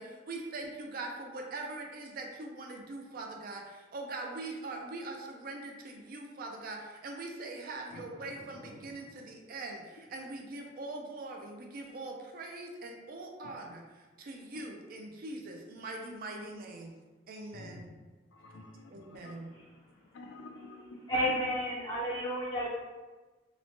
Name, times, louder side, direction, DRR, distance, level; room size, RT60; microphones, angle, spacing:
voice 1, 0.0-16.9 17.3-17.9 18.9-19.5, right 2 dB, 50° right, 2 dB, 0.4 m, -42 dB
voice 2, 7.9-8.8 13.4-13.5 17.5-17.9 18.3-19.4 19.7-19.8 20.1-21.0, left 2 dB, 85° left, 3 dB, 0.4 m, -50 dB
voice 3, 21.1-22.7, equal, 25° left, -8 dB, 0.5 m, -31 dB
2.9 x 2.1 x 2.6 m, 1.3 s
head